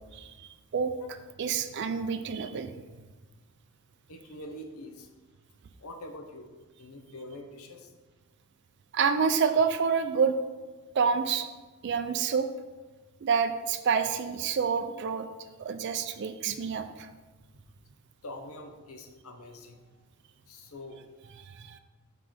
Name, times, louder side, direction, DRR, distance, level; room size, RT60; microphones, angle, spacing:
voice 1, 0.1-2.7 8.9-10.4 10.9-11.5 11.8-12.5 13.2-15.3 15.6-17.1 21.5-21.8, right 6 dB, 50° right, 8 dB, 0.4 m, -28 dB
voice 2, 4.1-5.1 5.8-6.5 6.8-7.9 17.1-17.5 18.2-19.8 20.5-21.0, left 1 dB, 80° left, 5 dB, 0.8 m, -44 dB
5.8 x 3.8 x 4.9 m, 1.3 s
head